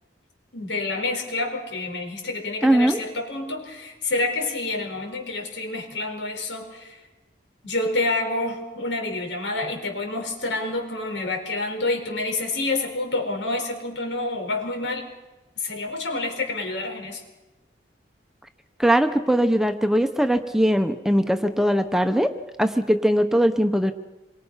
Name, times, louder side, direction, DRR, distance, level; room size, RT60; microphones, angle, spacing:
voice 1, 0.5-7.0 7.6-15.1 15.6-17.2, left 2 dB, 85° left, 3 dB, 5.2 m, -28 dB
voice 2, 2.6-3.0 18.8-22.3 22.6-23.9, equal, 5° right, 7 dB, 0.9 m, -20 dB
27.0 x 23.5 x 5.8 m, 1.1 s
head